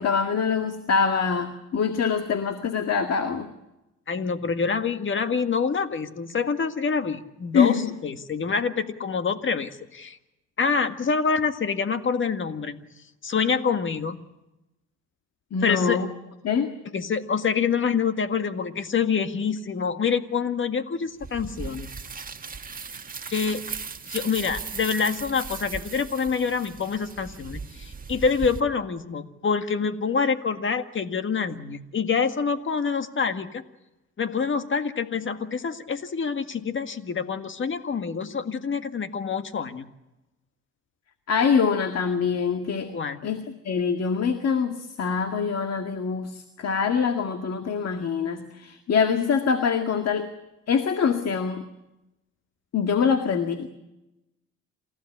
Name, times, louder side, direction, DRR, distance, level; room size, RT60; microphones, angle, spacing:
voice 1, 0.0-3.5 7.5-7.8 15.5-16.1 16.4-16.7 41.3-42.9 43.2-50.3 50.7-51.6 52.7-53.7, left 6 dB, 55° left, 7 dB, 2.0 m, -24 dB
voice 2, 4.1-10.2 10.6-12.8 13.2-14.2 15.6-16.0 16.9-21.9 23.3-23.7 24.1-33.6 34.2-39.9 42.9-43.3, left 5 dB, 40° left, 9 dB, 1.8 m, -26 dB
sound 1, 21.2-28.6, right 5 dB, 30° right, 1.6 m, -37 dB
28.0 x 16.0 x 9.9 m, 0.96 s
cardioid pair, 90°, 30 cm